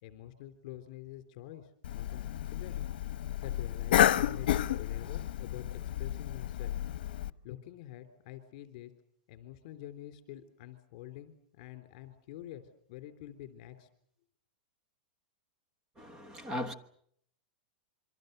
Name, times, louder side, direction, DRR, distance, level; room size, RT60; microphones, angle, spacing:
voice 1, 0.0-2.8 3.4-6.7 7.4-8.9 9.3-12.6 12.9-13.9, left 13 dB, 45° left, 3.4 m, -47 dB
Cough, 1.8-7.3, left 11 dB, 70° left, 0.9 m, -31 dB
voice 2, 16.0-16.7, left 1 dB, 10° right, 1.2 m, -38 dB
27.0 x 24.0 x 6.7 m
supercardioid pair, 170°, 5 cm